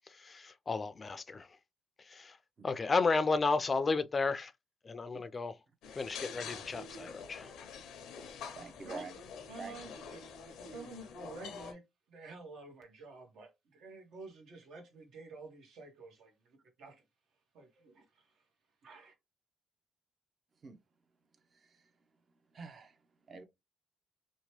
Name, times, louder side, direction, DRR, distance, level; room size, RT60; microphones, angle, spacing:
voice 1, 0.1-1.6 2.0-2.4 2.6-4.5 4.8-5.6 6.0-7.5, left 4 dB, 35° left, 0.3 m, -33 dB
sound 1, 5.8-11.7, left 5 dB, 85° left, 0.6 m, -47 dB
voice 2, 8.5-9.2 9.6-9.7 20.6-20.8 21.5-21.9 22.5-23.0 23.3-23.4, right 4 dB, 45° right, 0.6 m, -46 dB
voice 3, 9.5-11.8 12.1-17.0 17.5-18.3 18.8-19.1, right 3 dB, 75° right, 1.0 m, -50 dB
2.8 x 2.1 x 3.0 m
cardioid pair, 90°, 0 cm